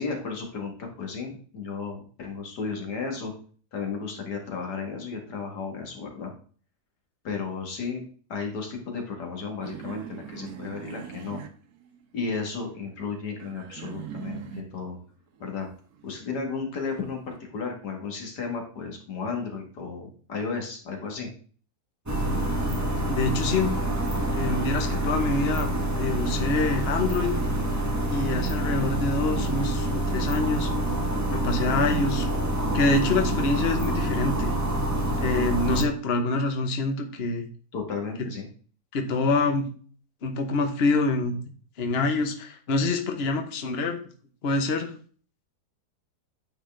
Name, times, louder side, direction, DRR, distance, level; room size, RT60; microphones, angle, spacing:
voice 1, 0.0-3.3 3.7-6.3 7.2-8.0 8.3-11.4 12.1-15.0 15.4-15.7 16.0-21.3 37.7-38.5, left 5 dB, 80° left, 3 dB, 2.3 m, -33 dB
sound 1, 9.6-12.3 12.6-14.9 15.3-17.4, right 8 dB, 70° right, 1.3 m, -41 dB
sound 2, 22.1-35.8, right 1 dB, 15° right, 0.9 m, -26 dB
voice 2, 23.1-23.7 24.4-25.7 25.9-27.3 28.1-30.7 31.3-32.3 32.7-34.5 35.2-37.4 38.9-39.6 40.2-41.3 41.8-44.0 44.4-44.9, left 3 dB, 45° left, 4 dB, 1.1 m, -26 dB
9.1 x 4.8 x 3.4 m, 0.43 s
omnidirectional pair, 1.7 m